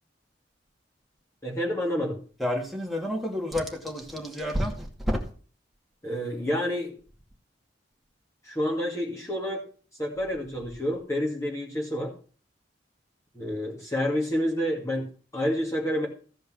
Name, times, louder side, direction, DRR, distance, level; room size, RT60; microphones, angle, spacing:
voice 1, 1.4-2.2 6.0-7.0 8.4-9.7 10.0-12.1 13.3-16.1, equal, 15° left, 2.4 m, -29 dB
voice 2, 2.4-5.2, equal, ahead, 2.3 m, -29 dB
14.5 x 5.3 x 6.2 m
head